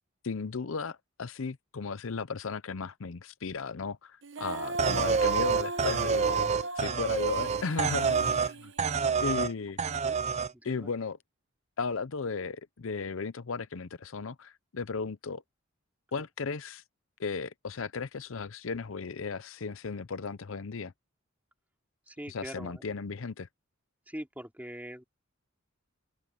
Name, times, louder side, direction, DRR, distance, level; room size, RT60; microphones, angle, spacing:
voice 1, 0.2-6.5 6.8-8.7 9.2-9.8 10.6-11.2 11.8-15.4 16.1-16.8 17.2-20.9 22.3-23.5, left 5 dB, 70° left, 0.6 m, -35 dB
Female singing, 4.2-9.4, right 2 dB, 60° right, 1.1 m, -37 dB
sound 1, 4.8-8.5 8.8-9.5 9.8-10.5, right 6 dB, 30° right, 0.4 m, -28 dB
voice 2, 10.5-10.9 22.1-22.8 24.1-25.0, equal, 10° right, 2.8 m, -43 dB
open air
head